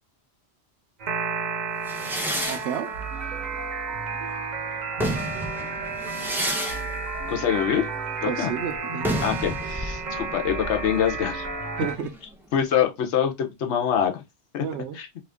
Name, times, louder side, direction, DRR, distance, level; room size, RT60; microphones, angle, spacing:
sound 1, 1.0-12.0, right 4 dB, 45° right, 0.7 m, -32 dB
sound 2, 1.9-4.3 4.8-12.3, equal, 5° right, 0.4 m, -32 dB
voice 1, 2.5-2.9 8.3-9.2 11.8-12.1 14.6-15.0, right 8 dB, 80° right, 0.9 m, -31 dB
voice 2, 7.3-7.9 8.2-8.5 9.2-11.5 12.5-14.2 14.5-14.6 14.9-15.1, left 9 dB, 80° left, 1.0 m, -25 dB
2.9 x 2.5 x 3.4 m
omnidirectional pair, 1.2 m